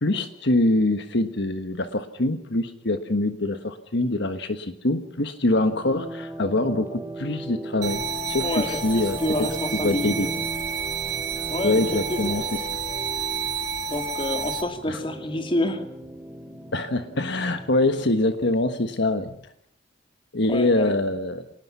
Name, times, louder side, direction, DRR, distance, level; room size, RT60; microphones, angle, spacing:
voice 1, 0.0-9.2 9.8-10.3 11.6-12.6 14.9-15.0 16.7-19.4 20.3-21.4, left 2 dB, 65° left, 8 dB, 1.4 m, -24 dB
sound 1, 5.5-17.9, right 1 dB, 10° right, 3.4 m, -37 dB
sound 2, 7.8-14.6, right 5 dB, 65° right, 3.8 m, -30 dB
voice 2, 8.4-10.3 11.5-11.8 12.1-12.4 13.9-15.8 20.5-20.9, left 1 dB, 30° left, 6 dB, 2.7 m, -28 dB
27.0 x 19.5 x 5.7 m, 0.69 s
head